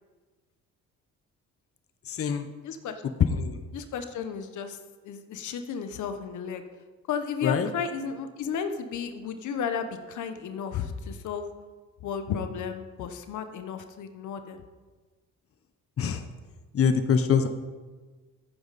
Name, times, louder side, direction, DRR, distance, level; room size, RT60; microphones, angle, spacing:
voice 1, 2.1-2.5 3.3-3.6 7.4-7.7 16.0-16.3 16.7-17.5, left 6 dB, 50° left, 8 dB, 0.9 m, -24 dB
voice 2, 2.6-3.0 3.7-4.8 5.0-6.6 7.1-11.5 12.0-14.6, left 7 dB, 75° left, 8 dB, 1.1 m, -33 dB
15.0 x 9.0 x 4.2 m, 1.4 s
cardioid pair, 90°, 30 cm